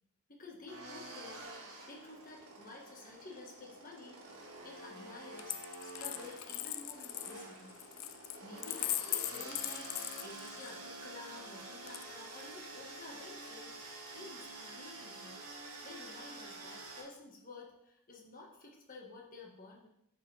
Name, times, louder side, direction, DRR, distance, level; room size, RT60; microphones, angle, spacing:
voice 1, 0.3-4.2 4.6-7.8 8.4-15.4 15.8-19.9, left 3 dB, 40° left, -1 dB, 1.5 m, -52 dB
sound 1, 0.7-17.0, right 2 dB, 90° right, 1.9 m, -48 dB
Coin (dropping), 5.4-10.8 11.9-12.6, left 15 dB, 65° left, 0.4 m, -40 dB
10.0 x 5.4 x 3.4 m, 0.79 s
head